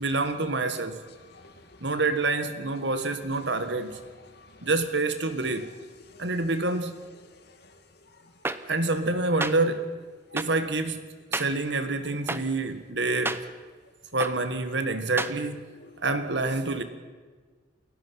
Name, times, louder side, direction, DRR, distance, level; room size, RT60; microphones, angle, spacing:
voice 1, 0.0-1.0 1.8-4.0 4.6-5.7 6.2-6.9 8.7-9.9 10.3-13.4 14.1-15.6 16.0-16.8, right 3 dB, 60° right, 1.7 m, -27 dB
voice 2, 0.7-2.1 2.7-4.9 5.2-8.7 10.3-10.4 12.0-12.3 15.7-15.9, left 3 dB, 55° left, 2.4 m, -54 dB
sound 1, 8.4-8.6 9.4-9.5 10.4-10.5 11.3-11.5 12.3-12.4 13.2-13.4 14.2-14.3 15.2-15.3, right 2 dB, 10° right, 0.7 m, -28 dB
29.0 x 17.0 x 5.8 m
head